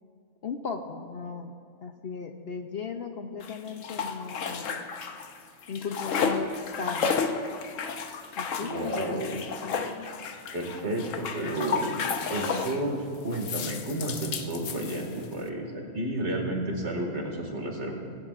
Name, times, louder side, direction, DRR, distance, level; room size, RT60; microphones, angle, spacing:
voice 1, 0.4-4.9 5.7-6.5 6.8-7.5 8.4-10.1, left 5 dB, 55° left, 5 dB, 0.8 m, -37 dB
sound 1, 3.4-5.4 5.6-12.8 13.3-15.3, left 5 dB, 70° left, 1.1 m, -32 dB
voice 2, 8.6-9.4 10.5-11.9 12.3-17.9, right 1 dB, 60° right, 1 dB, 2.3 m, -31 dB
21.0 x 17.0 x 2.5 m, 2.3 s
omnidirectional pair, 1.4 m